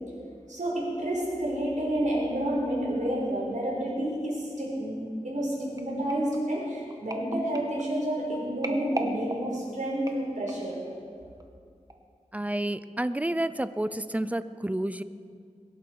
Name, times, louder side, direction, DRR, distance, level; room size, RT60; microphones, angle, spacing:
voice 1, 0.5-10.8, right 1 dB, 70° right, -4 dB, 4.8 m, -29 dB
sound 1, 5.8-10.8 11.4-11.6 11.9-12.0, right 1 dB, 30° right, 1.3 m, -40 dB
voice 2, 12.3-15.0, right 1 dB, 10° right, 13 dB, 0.5 m, -30 dB
21.5 x 11.0 x 4.7 m, 2.3 s
wide cardioid pair, 70°, 13 cm